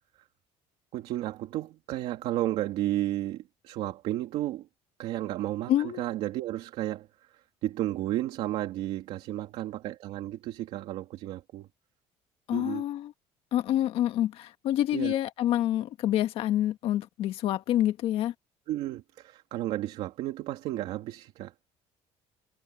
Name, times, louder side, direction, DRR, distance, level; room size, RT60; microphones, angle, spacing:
voice 1, 0.9-4.7 5.0-7.1 7.3-11.7 12.5-12.8 14.9-15.2 18.7-21.5, right 14 dB, 60° right, 2.5 m, -33 dB
voice 2, 5.7-6.1 12.5-13.1 13.5-18.3, left 12 dB, 55° left, 1.7 m, -27 dB
cardioid pair, 175°, 12 cm